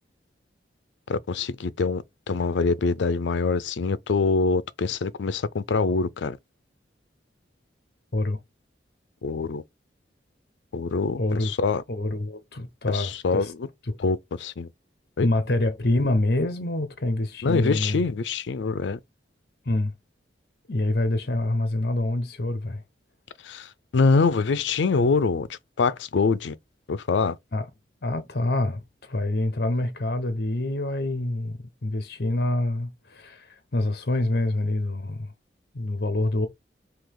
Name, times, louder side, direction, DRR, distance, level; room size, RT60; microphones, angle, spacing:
voice 1, 1.1-6.4 9.2-9.6 10.7-11.8 12.9-13.5 14.0-14.7 15.2-15.3 17.4-19.0 23.4-26.5 26.9-27.4, left 4 dB, 80° left, 0.5 m, -24 dB
voice 2, 11.2-11.5 11.9-13.5 13.9-14.0 15.2-18.0 19.7-19.9 20.7-22.8 27.5-27.7 28.0-35.3 35.7-36.5, left 2 dB, 60° left, 0.8 m, -26 dB
3.8 x 2.8 x 4.7 m
head